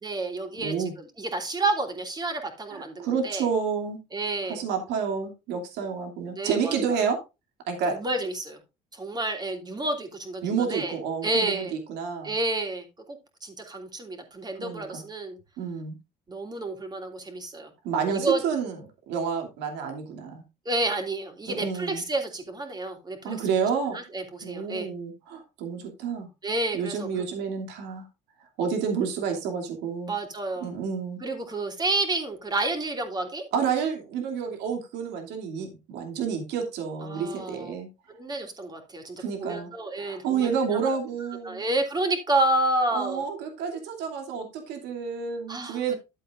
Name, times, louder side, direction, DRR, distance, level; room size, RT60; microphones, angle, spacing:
voice 1, 0.0-3.5 4.1-4.6 6.3-7.0 7.9-8.6 8.9-10.9 11.2-11.7 12.2-15.4 16.3-17.7 18.1-18.4 20.6-23.4 23.9-24.9 26.4-27.2 30.1-30.7 31.2-33.4 37.0-37.7 38.1-40.5 41.4-43.2 45.5-45.9, right 2 dB, 25° right, 4 dB, 3.3 m, -30 dB
voice 2, 0.6-0.9 2.7-4.0 4.5-7.2 7.7-8.0 10.4-12.3 14.6-15.0 15.6-16.0 17.8-18.8 19.1-20.4 21.5-22.0 23.2-24.0 24.4-26.3 26.7-28.0 28.6-30.1 30.6-31.2 33.5-37.9 39.2-39.7 40.0-41.6 42.9-45.9, right 6 dB, 90° right, 3 dB, 2.7 m, -29 dB
13.0 x 8.0 x 2.5 m, 0.26 s
cardioid pair, 110°, 17 cm